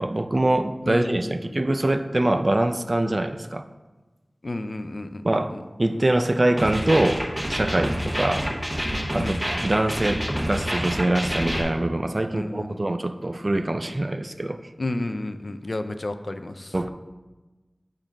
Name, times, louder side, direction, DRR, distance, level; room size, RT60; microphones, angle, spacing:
voice 1, 0.0-3.6 5.2-5.5 5.8-7.2 7.5-8.5 9.1-14.6 16.7-16.9, right 1 dB, 45° right, 8 dB, 0.3 m, -24 dB
voice 2, 0.8-1.3 4.4-5.2 9.2-9.4 12.3-12.8 14.8-16.7, left 2 dB, 70° left, 8 dB, 0.3 m, -31 dB
sound 1, 6.6-11.6, equal, 15° right, 1.0 m, -27 dB
7.4 x 2.6 x 4.9 m, 1.2 s
wide cardioid pair, 50°, 0 cm